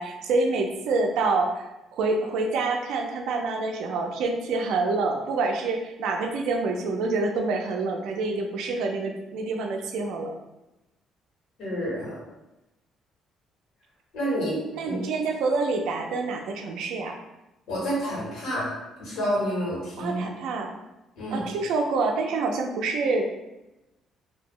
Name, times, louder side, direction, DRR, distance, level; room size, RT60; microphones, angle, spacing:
voice 1, 0.0-10.3 14.7-17.2 20.0-20.8 21.3-23.3, right 3 dB, 80° right, 3 dB, 0.4 m, -27 dB
voice 2, 11.6-12.2 14.1-14.6 14.9-15.0 17.7-18.7 19.0-20.2 21.2-21.5, equal, 85° left, -6 dB, 1.5 m, -28 dB
2.7 x 2.0 x 3.6 m, 0.97 s
cardioid pair, 140°, 0 cm